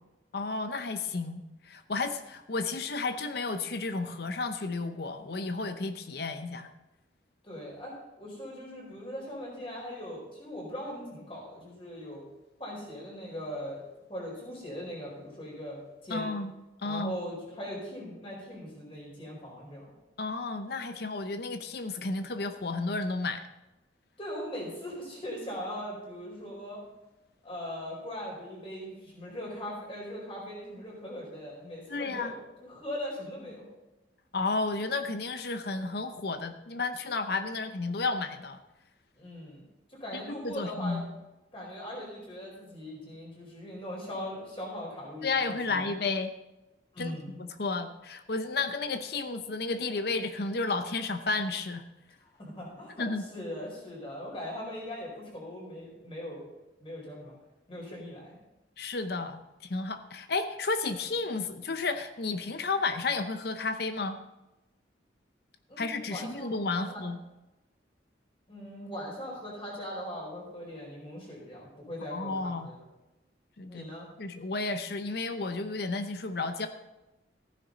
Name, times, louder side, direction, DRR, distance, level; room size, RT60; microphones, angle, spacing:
voice 1, 0.3-6.7 16.1-16.5 16.8-17.2 20.2-23.4 31.9-32.3 34.3-38.6 40.1-41.1 45.2-46.3 47.0-47.2 47.6-51.8 53.0-53.2 58.8-59.4 59.7-64.2 65.8-67.2 72.1-72.7 73.6-73.9 74.2-76.7, left 3 dB, 55° left, 9 dB, 0.7 m, -32 dB
voice 2, 7.4-12.2 12.6-13.8 14.1-16.3 16.8-19.9 24.2-26.8 27.4-33.7 39.2-41.0 41.5-45.9 46.9-47.4 52.2-56.4 56.8-57.3 57.7-58.3 65.7-67.0 68.5-72.8 73.7-74.1, equal, 30° left, -3 dB, 4.8 m, -40 dB
15.0 x 10.0 x 4.0 m, 1.0 s
head